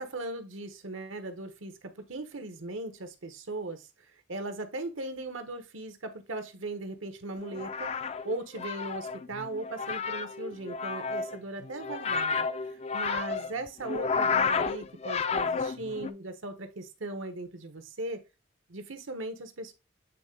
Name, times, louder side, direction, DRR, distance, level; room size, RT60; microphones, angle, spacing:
voice 1, 0.0-18.2 18.7-19.7, right 2 dB, 85° right, 1.2 m, -38 dB
sound 1, 7.4-16.1, left 5 dB, 30° left, 0.3 m, -31 dB
8.3 x 3.3 x 3.8 m
head